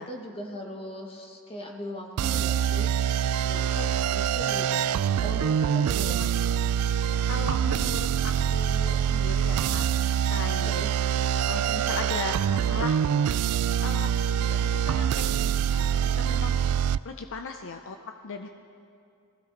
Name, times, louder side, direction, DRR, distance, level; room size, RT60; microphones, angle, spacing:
voice 1, 0.1-3.0 3.4-3.6 4.1-4.8 5.2-6.3 10.6-11.0, equal, 25° left, 1 dB, 1.3 m, -39 dB
sound 1, 2.2-17.0, right 8 dB, 80° right, 0.3 m, -25 dB
voice 2, 3.5-3.9 6.0-6.3 6.9-10.8 11.5-15.9 16.1-16.7 17.0-18.0 18.2-18.5, left 4 dB, 60° left, 5 dB, 0.6 m, -38 dB
21.5 x 15.5 x 3.9 m, 2.4 s
head